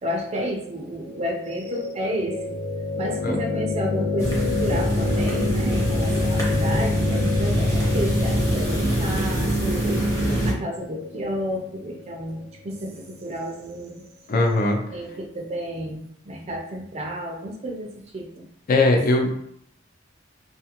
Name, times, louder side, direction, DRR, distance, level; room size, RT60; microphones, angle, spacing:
voice 1, 0.0-2.6 3.0-10.0 10.5-14.1 14.9-18.5, equal, 35° right, 0 dB, 0.4 m, -31 dB
sound 1, 1.0-13.1, left 3 dB, 90° left, 0.8 m, -28 dB
sound 2, 4.2-10.5, right 1 dB, 15° left, 0.8 m, -24 dB
voice 2, 14.3-14.8 18.7-19.4, left 2 dB, 50° left, 3 dB, 0.4 m, -20 dB
2.4 x 2.4 x 2.8 m, 0.70 s
head